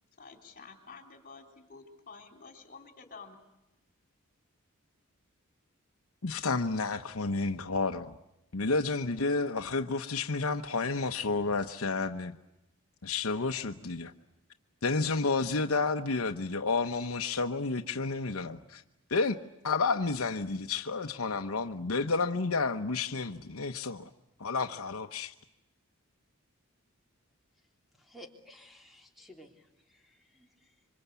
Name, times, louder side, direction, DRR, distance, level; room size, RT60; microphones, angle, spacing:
voice 1, 0.2-3.4, left 4 dB, 45° left, 3.5 m, -50 dB
voice 2, 6.2-8.1 8.5-12.3 13.0-14.1 14.8-18.8 19.1-19.4 19.6-24.1 24.4-25.3, left 4 dB, 80° left, 1.0 m, -30 dB
voice 3, 27.9-30.7, left 1 dB, ahead, 3.4 m, -54 dB
27.0 x 25.0 x 8.3 m
head